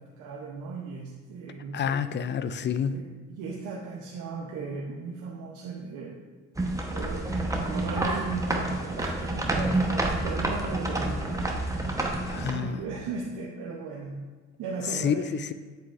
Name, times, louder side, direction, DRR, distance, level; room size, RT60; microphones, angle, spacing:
voice 1, 0.0-2.2 2.9-6.2 6.9-11.4 12.3-14.2 14.6-15.3, right 4 dB, 90° right, -2 dB, 0.8 m, -36 dB
voice 2, 1.7-3.0 12.3-12.8 14.9-15.5, left 7 dB, 40° left, 13 dB, 0.4 m, -28 dB
sound 1, 6.6-12.5, right 1 dB, 10° right, 1.0 m, -29 dB
7.7 x 7.5 x 2.5 m, 1.4 s
cardioid pair, 90°, 30 cm